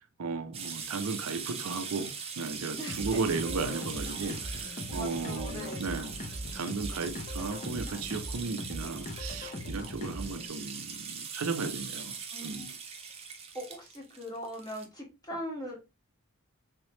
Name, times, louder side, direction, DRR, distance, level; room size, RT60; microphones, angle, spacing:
voice 1, 0.0-6.1 6.5-12.7, right 4 dB, 75° right, 0.5 m, -35 dB
sound 1, 0.5-14.9, right 6 dB, 25° right, 0.6 m, -41 dB
voice 2, 2.7-3.2 4.2-4.4 4.9-5.9 12.3-12.7 13.5-15.8, equal, 15° left, 1.3 m, -40 dB
sound 2, 2.9-10.5, left 1 dB, 35° left, 0.7 m, -40 dB
3.6 x 3.1 x 2.9 m
head